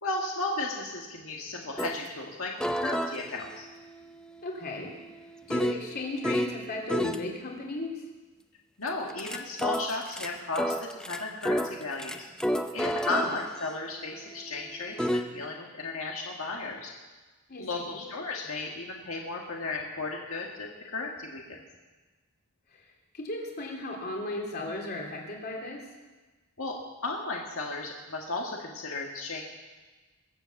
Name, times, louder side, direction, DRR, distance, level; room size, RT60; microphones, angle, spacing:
voice 1, 0.0-3.7 8.8-12.2 12.7-16.9 17.6-21.6 26.6-26.8 27.0-29.4, left 3 dB, 80° left, -1 dB, 1.8 m, -34 dB
sound 1, 1.8-2.0 2.6-6.6 6.9-7.2 8.9-15.3, equal, 5° left, 0.6 m, -32 dB
voice 2, 4.4-4.9 5.5-8.0 13.1-13.3 17.5-18.0 22.7-22.8 23.1-25.9, left 2 dB, 50° left, 0 dB, 3.0 m, -35 dB
22.5 x 7.9 x 7.1 m, 1.3 s
head